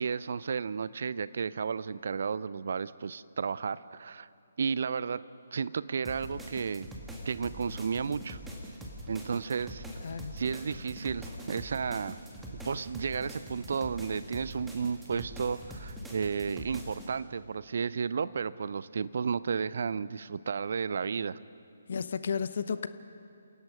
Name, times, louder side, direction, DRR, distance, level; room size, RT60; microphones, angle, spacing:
voice 1, 0.0-4.3 4.6-5.2 5.5-6.9 7.3-8.4 9.1-9.8 10.3-12.2 12.5-21.4, right 6 dB, 50° right, 18 dB, 0.5 m, -33 dB
sound 1, 6.0-17.1, equal, 5° right, 2.2 m, -43 dB
voice 2, 10.0-10.4 21.9-22.9, left 6 dB, 50° left, 13 dB, 0.8 m, -33 dB
28.0 x 17.5 x 5.3 m, 2.5 s
figure-of-eight pair, 140°, 0 cm